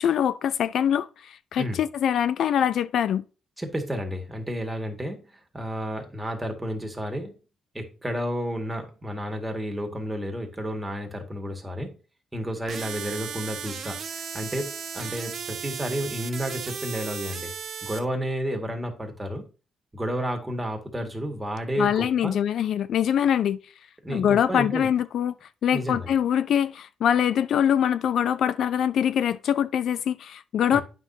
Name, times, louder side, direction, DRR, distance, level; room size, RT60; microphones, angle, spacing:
voice 1, 0.0-3.2 21.8-23.6 24.1-25.3 25.6-30.8, left 9 dB, 70° left, 0.4 m, -23 dB
voice 2, 3.6-5.2 5.5-7.3 7.7-11.9 12.3-17.5 17.8-19.5 19.9-22.4 24.0-24.9 25.7-26.1 30.7-30.8, equal, 10° right, 1.9 m, -31 dB
sound 1, 12.7-18.0, right 6 dB, 55° right, 1.6 m, -35 dB
9.1 x 6.0 x 2.8 m
cardioid pair, 90°, 0 cm